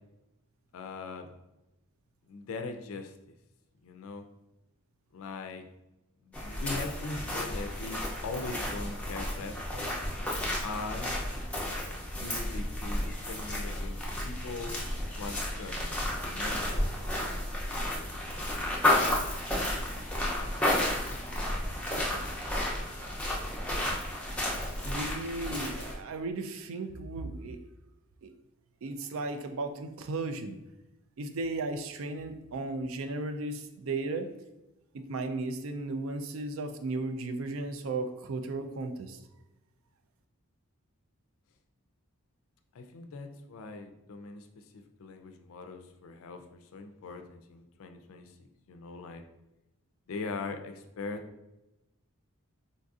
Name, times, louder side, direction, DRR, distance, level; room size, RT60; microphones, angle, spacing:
voice 1, 0.7-1.3 2.3-3.1 3.8-4.2 5.1-5.6 6.2-10.0 10.6-11.2 12.1-14.8 15.2-17.6 42.7-44.5 44.7-48.3 48.7-49.2 50.1-51.2, left 3 dB, 70° left, 6 dB, 0.4 m, -41 dB
sound 1, 6.3-25.9, left 1 dB, 5° left, 0.5 m, -32 dB
sound 2, 8.2-22.7, equal, 85° right, 1.3 m, -50 dB
voice 2, 24.8-27.6 28.2-28.3 28.8-30.6 31.2-34.3 35.1-39.2, right 2 dB, 65° right, 7 dB, 0.3 m, -35 dB
3.9 x 2.6 x 2.4 m, 0.95 s
head